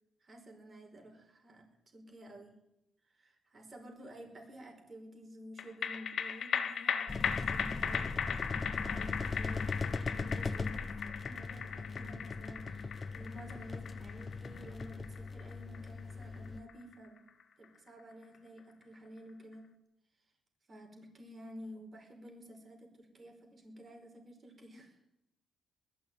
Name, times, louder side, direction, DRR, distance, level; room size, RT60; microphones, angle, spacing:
voice 1, 0.2-1.7 1.9-2.6 3.1-17.3 17.6-19.7 20.7-24.9, equal, 35° right, 3 dB, 5.1 m, -51 dB
sound 1, 5.6-18.2 18.6-18.7, left 7 dB, 60° left, 1.8 m, -38 dB
sound 2, 7.1-16.6, left 4 dB, 25° left, 1.0 m, -39 dB
20.0 x 14.0 x 9.3 m, 0.86 s
cardioid pair, 135°, 0 cm